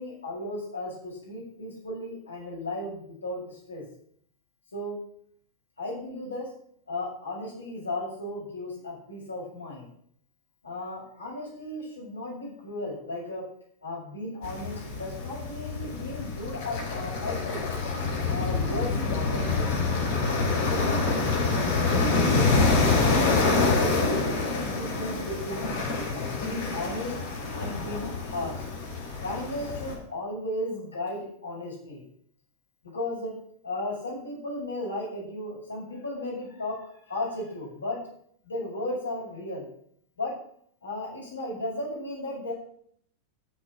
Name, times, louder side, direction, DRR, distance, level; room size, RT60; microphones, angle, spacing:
voice 1, 0.0-3.8 4.7-5.0 5.8-6.5 6.9-9.9 10.6-13.4 13.8-17.7 18.3-19.7 20.7-21.8 22.1-23.0 23.6-25.7 26.3-27.1 27.5-28.6 29.2-32.0 32.8-33.3 33.6-38.0 38.4-39.7 40.2-40.3 40.8-42.5, left 1 dB, 75° left, -4 dB, 6.7 m, -35 dB
sound 1, 14.4-29.9, left 3 dB, 45° left, 4.6 m, -26 dB
13.5 x 7.4 x 7.6 m, 0.63 s
figure-of-eight pair, 90°, 0 cm